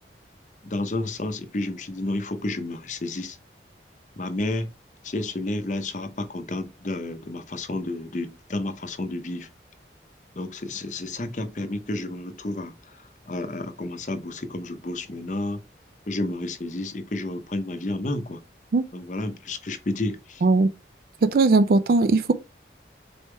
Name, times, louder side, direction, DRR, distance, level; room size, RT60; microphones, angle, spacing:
voice 1, 0.6-3.4 4.2-4.7 5.0-9.5 10.4-12.8 13.3-15.6 16.1-18.4 18.9-20.4, left 2 dB, 45° left, 0.6 m, -31 dB
voice 2, 20.4-20.7 21.2-22.3, right 3 dB, 55° right, 0.4 m, -19 dB
4.2 x 3.5 x 3.2 m
head